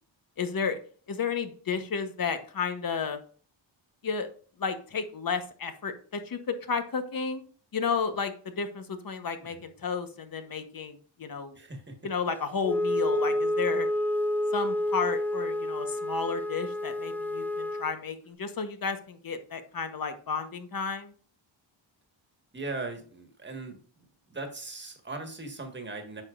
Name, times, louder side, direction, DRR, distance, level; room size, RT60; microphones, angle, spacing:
voice 1, 0.4-0.8 1.1-3.2 4.0-4.3 4.6-7.4 7.7-11.6 12.0-13.9 14.5-21.1, left 5 dB, 45° left, 8 dB, 1.1 m, -32 dB
voice 2, 11.5-12.0 22.5-23.8 24.3-26.2, right 3 dB, 20° right, 4 dB, 1.7 m, -39 dB
Wind instrument woodwind instrument, 12.6-17.9, left 1 dB, 5° left, 0.4 m, -29 dB
8.8 x 6.0 x 2.6 m, 0.43 s
cardioid pair, 90°, 49 cm